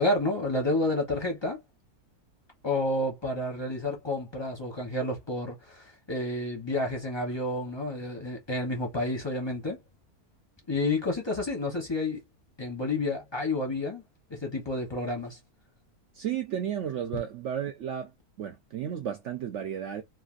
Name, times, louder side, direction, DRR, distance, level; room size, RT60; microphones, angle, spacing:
voice 1, 0.0-1.6 2.6-9.8 10.7-12.2 12.6-14.0 14.3-15.4, left 2 dB, 25° left, 0.6 m, -30 dB
voice 2, 16.1-18.1 18.4-20.0, right 9 dB, 65° right, 0.7 m, -33 dB
3.1 x 2.4 x 2.4 m
omnidirectional pair, 1.6 m